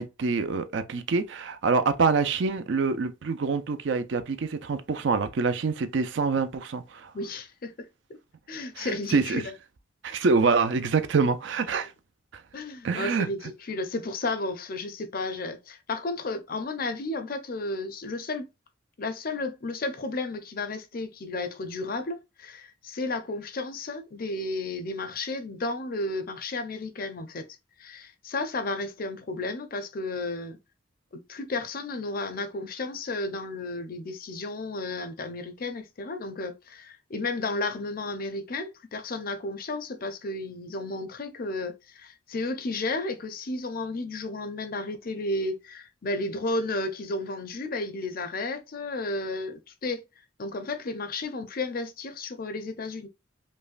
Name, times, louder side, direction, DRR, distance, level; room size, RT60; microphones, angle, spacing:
voice 1, 0.0-7.1 8.8-9.4 10.0-11.9 12.3-12.4 12.8-13.3, right 4 dB, 65° right, 0.4 m, -26 dB
voice 2, 7.1-7.9 8.5-9.5 12.5-18.5 19.0-27.5 27.8-30.6 31.1-50.0 50.4-53.1, left 2 dB, 45° left, 0.5 m, -33 dB
5.2 x 2.2 x 2.4 m
head